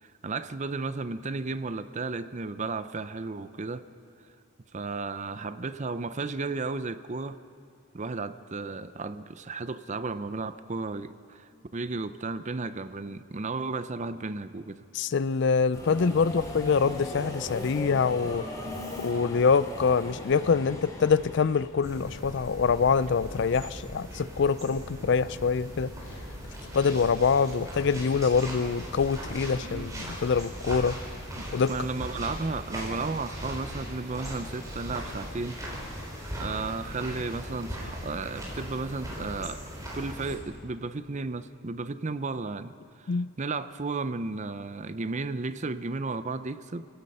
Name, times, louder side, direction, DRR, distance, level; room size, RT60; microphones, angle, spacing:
voice 1, 0.0-3.9 4.7-7.4 7.9-14.8 29.6-29.9 31.7-35.6 36.3-39.6 39.9-46.9, right 3 dB, 35° right, 13 dB, 0.6 m, -34 dB
voice 2, 14.9-18.5 19.0-25.9 26.7-31.0 31.5-31.7 43.1-43.3, left 5 dB, 60° left, 17 dB, 0.4 m, -25 dB
Subway metro underground, 15.7-22.0, left 1 dB, 15° left, 3.0 m, -38 dB
sound 1, 21.8-40.4, equal, 15° right, 4.7 m, -39 dB
29.5 x 17.5 x 5.6 m, 2.4 s
head